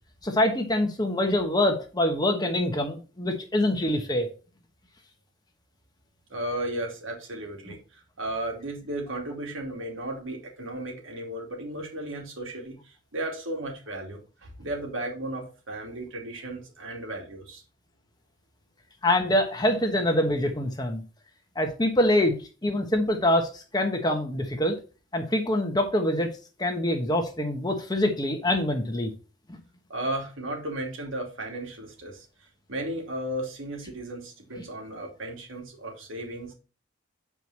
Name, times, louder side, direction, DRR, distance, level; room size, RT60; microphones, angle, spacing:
voice 1, 0.2-4.3 19.0-21.0 21.5-24.8 25.1-26.3 26.6-29.1 29.5-29.6, left 1 dB, 20° left, 4 dB, 1.2 m, -25 dB
voice 2, 6.3-17.6 29.9-32.3 32.7-36.5, right 1 dB, 80° right, 0 dB, 2.7 m, -35 dB
7.8 x 4.8 x 4.2 m, 0.34 s
head